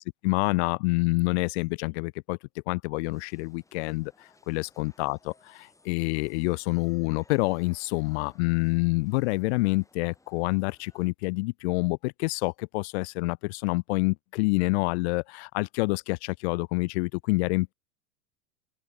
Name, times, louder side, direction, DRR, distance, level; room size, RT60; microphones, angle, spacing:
voice 1, 0.0-2.4 2.7-5.3 5.9-17.7, left 25 dB, 55° left, 0.7 m, -27 dB
sound 1, 3.0-11.1, left 2 dB, 10° left, 6.6 m, -62 dB
open air
hypercardioid pair, 120°, 40 cm